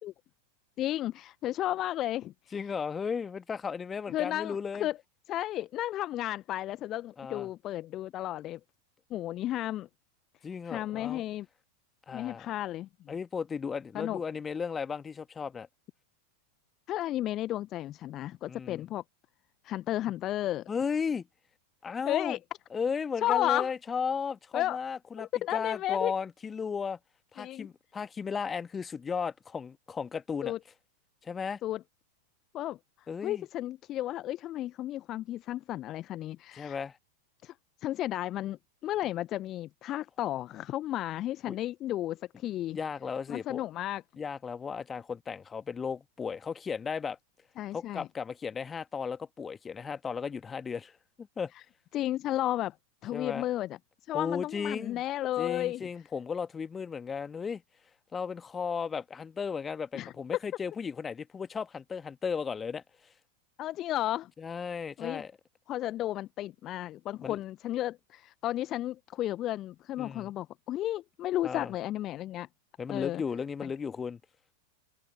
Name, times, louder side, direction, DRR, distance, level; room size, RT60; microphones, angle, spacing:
voice 1, 0.8-2.5 4.1-5.0 5.3-8.6 9.1-9.9 10.6-11.5 12.1-12.9 13.9-14.2 16.9-19.0 19.6-20.7 22.1-22.4 23.2-23.7 24.5-24.8 25.2-26.1 27.4-27.7 30.4-30.6 31.6-31.8 32.5-36.8 37.4-37.5 37.8-42.8 43.3-44.0 47.6-48.1 51.5-51.6 51.9-52.8 53.0-55.9 59.9-60.1 63.6-64.3 65.0-65.2 65.7-72.5 72.9-73.2 73.6-73.7, left 14 dB, 35° left, 0.8 m, -33 dB
voice 2, 2.5-4.9 7.2-7.5 10.4-11.2 12.1-12.5 13.1-15.7 18.5-18.8 20.7-21.3 21.8-22.4 22.7-27.0 27.3-30.5 31.2-31.6 33.1-33.4 36.6-37.0 41.5-41.6 42.7-43.6 44.2-47.2 47.7-50.9 51.2-51.5 53.1-53.4 54.1-55.0 55.4-57.6 58.1-62.8 64.4-65.3 67.2-67.4 70.0-70.3 71.4-71.7 72.8-74.2, left 6 dB, 20° left, 1.5 m, -35 dB
figure-of-eight pair, 90°, 0 cm